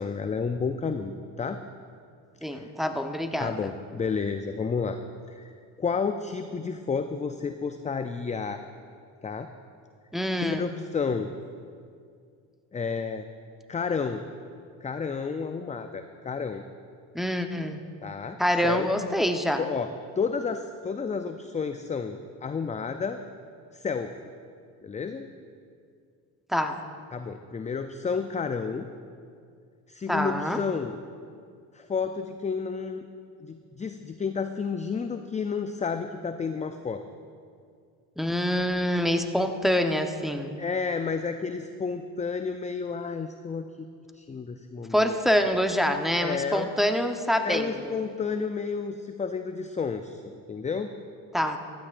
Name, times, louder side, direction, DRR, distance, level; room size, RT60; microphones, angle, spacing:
voice 1, 0.0-1.6 2.6-2.7 3.4-5.0 5.3-5.5 5.8-8.6 9.2-9.5 10.4-11.3 12.7-13.3 13.7-14.2 14.8-16.6 18.0-18.4 18.6-18.9 19.6-19.9 20.2-23.2 23.7-24.1 24.8-25.3 27.1-28.9 29.9-31.0 31.7-33.1 33.4-37.0 40.6-43.9 44.1-45.2 46.2-46.7 47.4-50.9, left 5 dB, 15° left, 8 dB, 0.4 m, -31 dB
voice 2, 2.4-3.7 10.1-10.7 17.1-17.8 18.4-19.6 26.5-26.8 30.1-30.6 38.2-40.6 44.9-47.9 51.3-51.6, equal, ahead, 5 dB, 0.9 m, -26 dB
15.0 x 12.5 x 2.5 m, 2.2 s
supercardioid pair, 60°, 45 cm